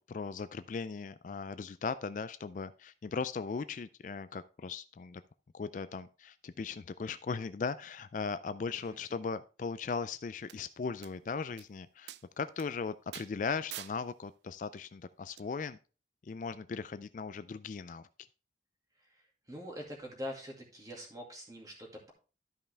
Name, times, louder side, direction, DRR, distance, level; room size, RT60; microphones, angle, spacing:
voice 1, 0.0-5.2 5.5-15.8 16.2-18.1, left 5 dB, 45° left, 14 dB, 0.3 m, -38 dB
sound 1, 10.5-10.6 11.0-11.1 11.6-11.7 12.1-12.2 12.6-12.7 13.1-13.3 13.7-14.0 15.4-15.5, right 12 dB, 70° right, 0.4 m, -44 dB
voice 2, 19.1-22.1, left 1 dB, 20° right, 0 dB, 2.2 m, -44 dB
12.5 x 5.5 x 3.3 m, 0.34 s
head